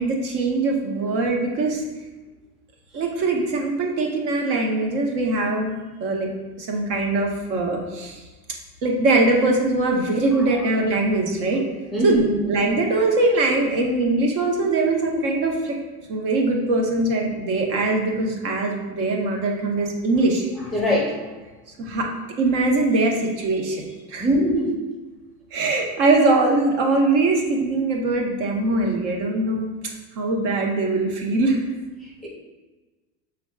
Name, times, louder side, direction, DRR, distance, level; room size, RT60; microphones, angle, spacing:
voice 1, 0.0-1.8 2.9-6.3 6.6-8.2 8.8-11.6 12.0-12.2 12.5-15.7 16.1-20.5 21.8-22.1 22.4-23.8 24.1-24.3 25.5-29.7 30.2-31.6, right 2 dB, 55° right, 1 dB, 1.1 m, -22 dB
voice 2, 11.9-12.5 20.7-21.2 24.2-24.8 32.0-32.3, equal, ahead, -3 dB, 0.6 m, -22 dB
5.9 x 3.6 x 2.3 m, 1.2 s
hypercardioid pair, 100°, 48 cm